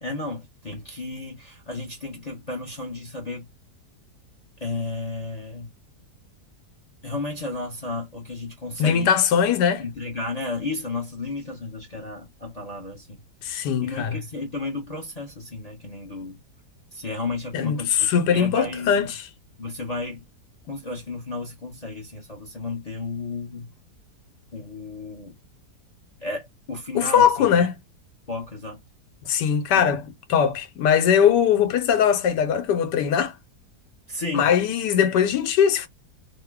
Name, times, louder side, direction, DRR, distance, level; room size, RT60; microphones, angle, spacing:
voice 1, 0.0-3.5 4.6-5.7 7.0-9.1 9.8-13.2 13.8-16.4 16.9-19.0 19.6-20.2 20.7-23.7 24.5-25.3 26.2-27.7 28.3-28.8 29.7-29.9 34.1-34.5, left 3 dB, 40° left, 0.6 m, -33 dB
voice 2, 8.8-9.8 13.4-14.2 17.5-19.3 26.9-27.8 29.2-33.3 34.3-35.9, left 8 dB, 80° left, 1.3 m, -21 dB
3.0 x 2.2 x 3.4 m
omnidirectional pair, 1.8 m